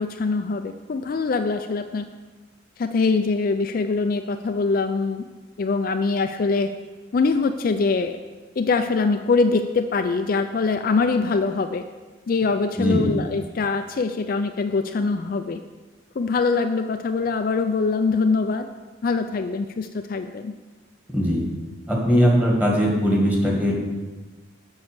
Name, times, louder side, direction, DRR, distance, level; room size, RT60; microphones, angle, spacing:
voice 1, 0.0-2.1 2.8-5.2 5.6-6.7 7.1-8.2 8.6-11.8 12.3-15.6 16.2-18.7 19.0-20.5, left 4 dB, 45° left, 7 dB, 0.4 m, -23 dB
voice 2, 12.8-13.1 21.1-21.4 21.9-23.7, equal, 10° right, -2 dB, 1.7 m, -20 dB
7.9 x 5.6 x 6.7 m, 1.3 s
head